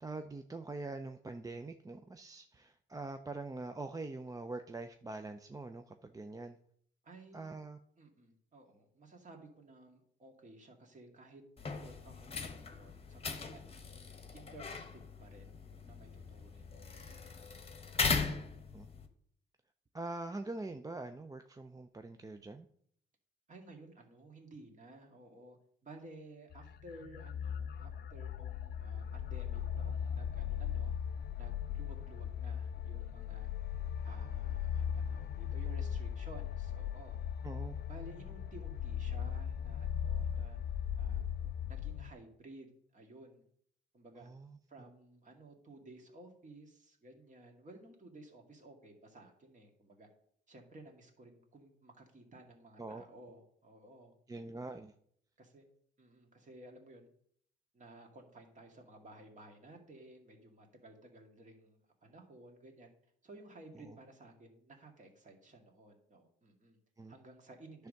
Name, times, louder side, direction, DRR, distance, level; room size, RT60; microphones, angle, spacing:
voice 1, 0.0-6.6 7.3-7.8 18.7-18.9 19.9-22.7 37.4-37.7 44.2-44.6 52.8-53.0 54.3-54.9 63.8-64.0 67.0-67.1, right 2 dB, 15° right, 7 dB, 0.5 m, -44 dB
voice 2, 7.0-7.6 8.0-11.4 11.7-13.8 14.3-17.1 23.5-25.6 25.8-30.9 31.4-33.5 34.0-37.2 37.9-40.6 41.0-41.3 41.7-43.4 43.9-44.3 44.7-50.1 50.5-54.1 55.4-55.6 56.0-57.1 57.7-62.9 63.2-66.8 67.1-67.9, right 2 dB, 40° right, 2 dB, 2.1 m, -55 dB
sound 1, 11.6-19.1, left 4 dB, 30° left, 1.0 m, -39 dB
sound 2, 26.5-42.1, left 9 dB, 55° left, 0.4 m, -38 dB
10.0 x 3.5 x 6.5 m, 0.66 s
cardioid pair, 90°, 20 cm